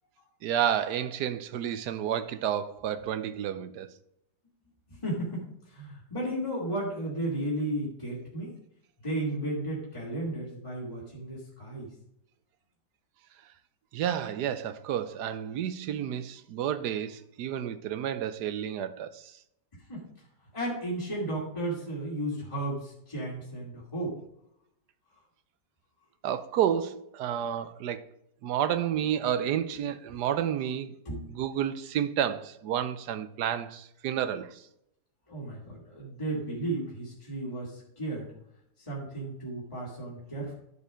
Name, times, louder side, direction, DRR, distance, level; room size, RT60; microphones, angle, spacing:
voice 1, 0.4-3.9 13.9-19.3 26.2-28.0 28.4-30.9 31.3-34.6, right 9 dB, 70° right, 1.2 m, -30 dB
voice 2, 4.9-8.6 9.0-11.9 19.9-20.3 20.5-24.1 31.0-31.3 35.3-38.3 38.8-40.5, right 1 dB, 15° left, 2.7 m, -34 dB
11.0 x 5.4 x 5.0 m
omnidirectional pair, 1.9 m